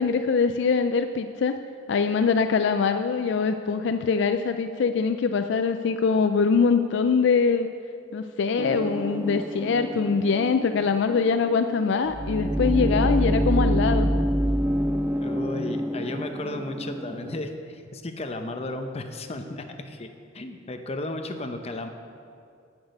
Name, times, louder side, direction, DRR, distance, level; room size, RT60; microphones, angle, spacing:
voice 1, 0.0-1.6 1.9-7.7 8.1-14.1, left 5 dB, 65° left, 8 dB, 0.4 m, -23 dB
sound 1, 8.6-17.4, right 1 dB, 10° right, 0.4 m, -27 dB
voice 2, 15.2-21.9, left 2 dB, 35° left, 6 dB, 0.8 m, -34 dB
15.5 x 6.1 x 5.3 m, 2.4 s
head